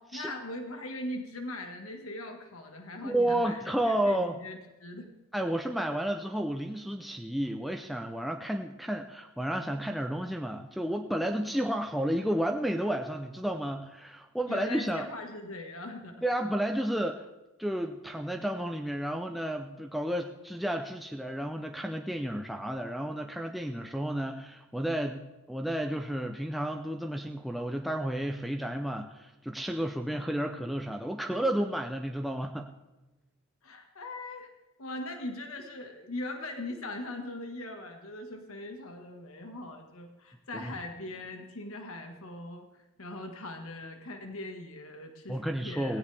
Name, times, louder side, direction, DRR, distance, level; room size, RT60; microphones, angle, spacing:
voice 1, 0.0-5.1 5.7-5.8 14.5-16.2 30.1-30.5 33.6-34.5 34.8-46.0, left 1 dB, 80° left, 4 dB, 1.6 m, -40 dB
voice 2, 3.0-4.4 5.3-15.1 16.2-17.3 17.6-32.7 40.5-40.6 45.3-46.0, right 1 dB, ahead, 3 dB, 0.5 m, -32 dB
17.0 x 16.5 x 3.4 m, 1.1 s
head